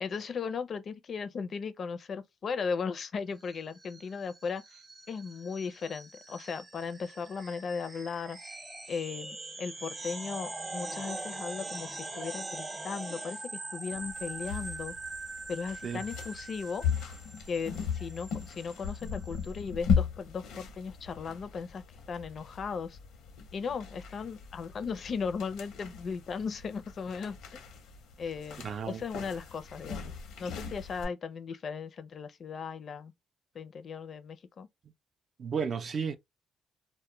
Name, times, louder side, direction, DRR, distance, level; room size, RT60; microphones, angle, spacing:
voice 1, 0.0-4.6 5.1-8.4 8.9-14.9 15.5-16.9 17.5-23.0 23.5-27.6 28.2-30.1 30.4-33.1 33.5-34.7, left 5 dB, 50° left, 0.4 m, -37 dB
sound 1, 3.4-19.6, right 2 dB, 25° right, 0.8 m, -43 dB
sound 2, 13.9-31.1, left 6 dB, 85° left, 0.7 m, -37 dB
voice 2, 28.6-29.0 35.4-36.2, right 6 dB, 50° right, 0.4 m, -33 dB
2.2 x 2.1 x 3.0 m
cardioid pair, 90°, 0 cm